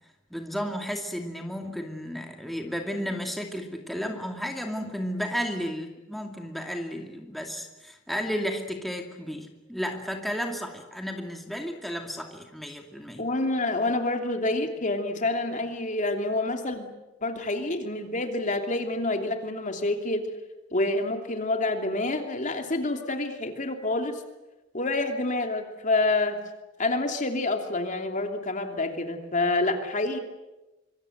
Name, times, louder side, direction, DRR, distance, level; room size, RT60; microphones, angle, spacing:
voice 1, 0.3-13.2, equal, ahead, 2 dB, 2.4 m, -33 dB
voice 2, 13.2-16.9 17.2-20.2 20.7-24.2 24.7-26.4 26.8-30.2, left 2 dB, 40° left, 5 dB, 2.9 m, -27 dB
25.5 x 25.0 x 8.0 m, 1.0 s
head